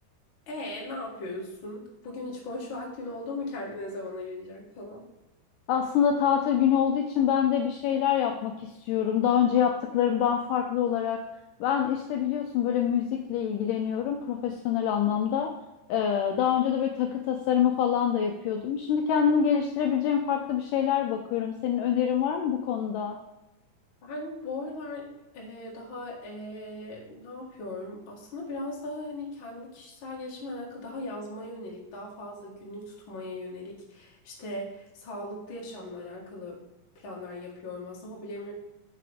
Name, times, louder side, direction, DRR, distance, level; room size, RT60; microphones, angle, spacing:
voice 1, 0.5-5.0 24.0-25.1 25.3-36.6 37.0-38.5, left 2 dB, 40° left, -3 dB, 2.0 m, -38 dB
voice 2, 5.7-11.2 11.6-15.5 15.9-23.2, left 8 dB, 80° left, 3 dB, 1.9 m, -25 dB
8.5 x 5.8 x 3.5 m, 0.99 s
omnidirectional pair, 4.4 m